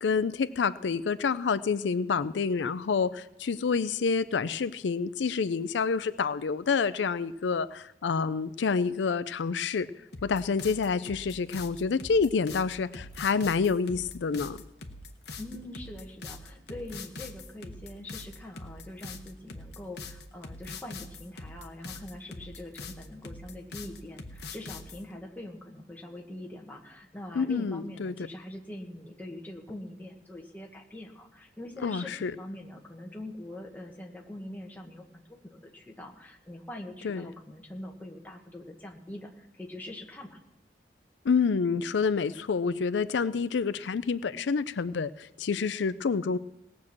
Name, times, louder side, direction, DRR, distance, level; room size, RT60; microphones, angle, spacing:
voice 1, 0.0-9.9 10.2-14.6 27.4-28.1 31.8-32.3 37.0-37.3 41.2-46.4, left 5 dB, 85° left, 14 dB, 0.5 m, -28 dB
sound 1, 10.1-25.0, left 3 dB, 65° left, 1.1 m, -43 dB
voice 2, 15.3-40.4, left 1 dB, 10° left, 0 dB, 1.6 m, -43 dB
18.0 x 6.2 x 7.3 m, 0.93 s
head